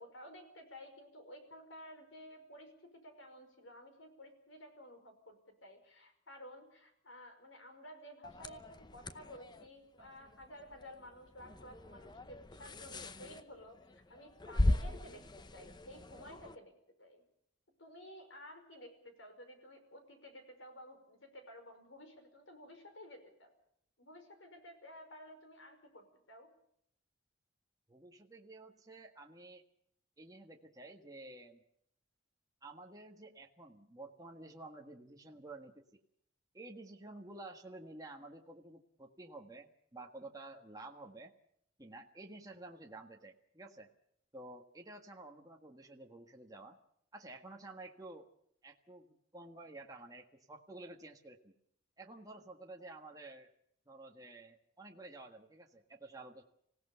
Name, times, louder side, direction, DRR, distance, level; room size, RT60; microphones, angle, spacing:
voice 1, 0.0-5.4 5.6-15.3 15.5-16.7 17.0-17.2 17.8-23.5 24.0-26.5, equal, 80° left, 6 dB, 5.4 m, -53 dB
sound 1, 8.2-16.6, left 1 dB, 20° left, 0.8 m, -39 dB
voice 2, 27.9-29.6 30.2-31.6 32.6-36.0 36.5-41.3 41.8-43.9 44.3-46.8 47.1-48.3 48.6-51.5 52.0-53.5 53.9-56.4, right 2 dB, 20° right, 2 dB, 1.6 m, -51 dB
26.5 x 17.0 x 6.9 m, 0.73 s
head